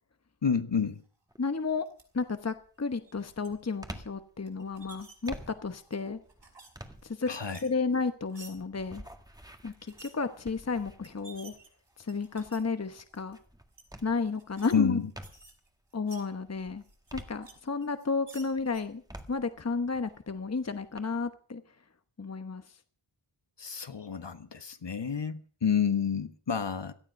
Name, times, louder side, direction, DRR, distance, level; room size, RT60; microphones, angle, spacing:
voice 1, 0.4-1.0 7.3-7.6 14.7-15.1 23.6-26.9, left 7 dB, 55° left, 9 dB, 1.4 m, -29 dB
sound 1, 1.3-1.7 2.2-15.7 16.1-18.0 18.4-21.0, right 1 dB, 5° right, 1.7 m, -50 dB
voice 2, 1.4-1.8 2.1-6.2 7.0-7.3 7.6-9.0 9.6-11.5 12.0-13.4 14.0-15.0 15.9-16.8 17.1-19.0 19.3-21.6 22.2-22.6, left 4 dB, 30° left, 9 dB, 1.0 m, -32 dB
sound 2, 1.9-2.0 2.9-3.5 4.5-5.3 5.7-6.7 7.0-8.5 9.7-10.1 10.7-10.8 11.0-12.6 13.1-13.3 13.7-13.8 14.3-14.7 15.0-16.3 16.8-17.5 17.8-18.8, right 3 dB, 60° right, 5.3 m, -52 dB
17.5 x 12.0 x 5.4 m, 0.43 s
wide cardioid pair, 80°, 50 cm